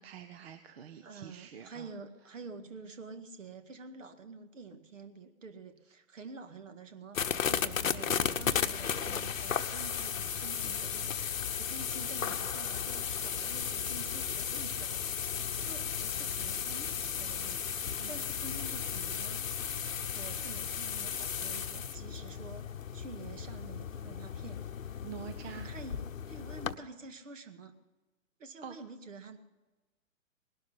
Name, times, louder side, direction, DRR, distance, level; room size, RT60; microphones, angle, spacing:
voice 1, 0.0-1.9 18.0-18.3 25.0-25.7 28.6-28.8, right 7 dB, 45° right, 8 dB, 1.1 m, -46 dB
voice 2, 1.0-15.2 15.6-19.4 20.1-24.9 25.6-27.7 28.4-29.4, right 4 dB, 65° right, 9 dB, 2.0 m, -48 dB
sound 1, 7.1-26.8, left 8 dB, 70° left, 1.0 m, -35 dB
19.5 x 12.0 x 5.6 m, 1.1 s
figure-of-eight pair, 125°, 41 cm